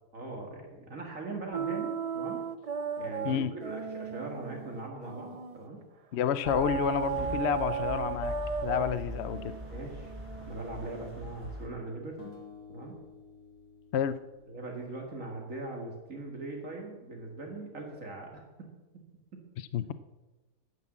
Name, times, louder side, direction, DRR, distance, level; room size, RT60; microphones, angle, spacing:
voice 1, 0.1-2.4 3.0-5.8 9.7-10.1 10.4-12.3 12.7-13.0 14.5-18.7 19.3-19.4, right 2 dB, 60° right, 0 dB, 2.2 m, -40 dB
sound 1, 1.5-5.7 6.4-11.2, right 6 dB, 75° right, 0.3 m, -36 dB
voice 2, 6.1-8.4 8.6-9.5 13.9-14.2 19.7-19.9, left 9 dB, 60° left, 14 dB, 0.7 m, -29 dB
sound 2, 6.4-11.7, right 1 dB, 10° right, 4.2 m, -42 dB
sound 3, 12.2-15.4, left 6 dB, 80° left, 2.7 m, -52 dB
11.0 x 9.8 x 7.4 m, 1.1 s
omnidirectional pair, 1.6 m